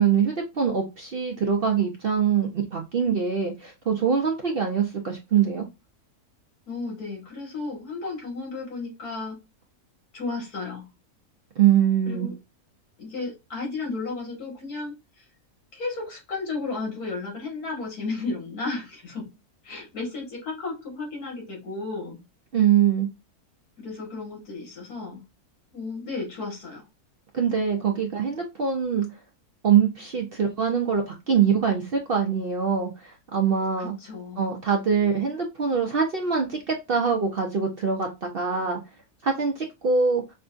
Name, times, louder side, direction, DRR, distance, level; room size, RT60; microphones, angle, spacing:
voice 1, 0.0-5.7 11.6-12.3 22.5-23.1 27.3-29.1 29.6-33.9 34.4-38.8 39.2-40.2, right 7 dB, 55° right, 0.6 m, -23 dB
voice 2, 6.7-9.4 10.1-10.8 12.0-12.3 13.0-15.2 15.7-19.3 19.6-22.2 23.8-25.2 25.7-26.8 33.8-34.4, left 3 dB, 80° left, 2.2 m, -33 dB
5.2 x 2.2 x 2.5 m
omnidirectional pair, 1.6 m